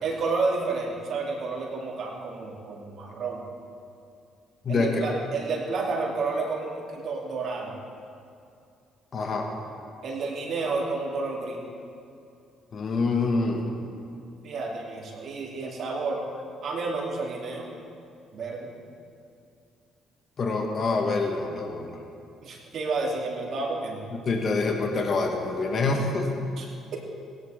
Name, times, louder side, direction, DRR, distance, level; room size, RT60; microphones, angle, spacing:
voice 1, 0.0-3.4 4.7-7.7 10.0-11.6 14.4-16.3 16.6-17.7 18.3-18.7 22.4-24.1 26.6-27.1, right 3 dB, 60° right, -2 dB, 2.6 m, -30 dB
voice 2, 4.7-5.1 9.1-9.5 12.7-13.7 20.4-21.9 24.3-26.3, left 3 dB, 50° left, 2 dB, 1.6 m, -26 dB
17.5 x 10.5 x 3.5 m, 2.5 s
hypercardioid pair, 60°, 0 cm